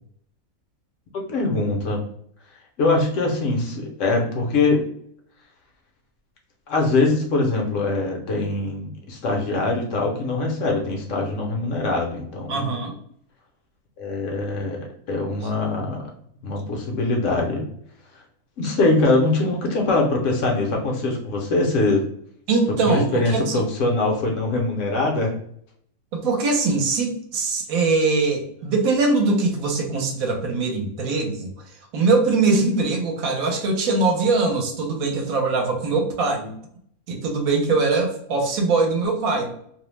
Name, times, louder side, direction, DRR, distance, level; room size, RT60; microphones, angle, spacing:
voice 1, 1.1-2.0 2.8-4.9 6.7-12.8 14.0-16.0 16.4-17.6 18.6-22.0 22.8-25.3, left 2 dB, 70° left, 0 dB, 0.9 m, -23 dB
voice 2, 12.5-12.9 22.5-23.6 26.1-31.5 31.9-36.5 37.1-39.5, right 3 dB, 75° right, 2 dB, 1.0 m, -22 dB
2.6 x 2.0 x 3.1 m, 0.66 s
omnidirectional pair, 1.5 m